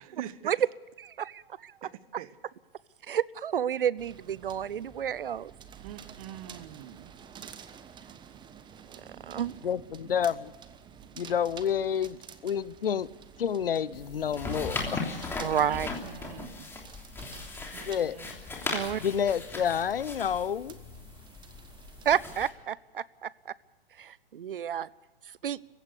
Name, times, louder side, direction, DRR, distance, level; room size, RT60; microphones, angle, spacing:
voice 1, 0.1-0.5 1.8-1.9 2.2-2.3 5.8-7.1 15.7-16.7 17.7-18.3, right 12 dB, 40° right, 1.2 m, -44 dB
voice 2, 1.0-2.2 3.0-5.5 8.9-9.5 15.4-15.9 18.7-19.0 22.0-23.5 23.9-24.9 25.2-25.6, right 9 dB, 65° right, 0.7 m, -31 dB
sound 1, 4.0-22.2, right 7 dB, 15° right, 1.2 m, -51 dB
voice 3, 9.6-10.5 11.2-13.1 13.4-15.3 17.9-18.2 19.0-20.8, left 8 dB, 70° left, 0.8 m, -29 dB
sound 2, 13.9-22.5, left 3 dB, 10° left, 3.1 m, -38 dB
26.5 x 15.5 x 6.8 m
figure-of-eight pair, 115°, 29 cm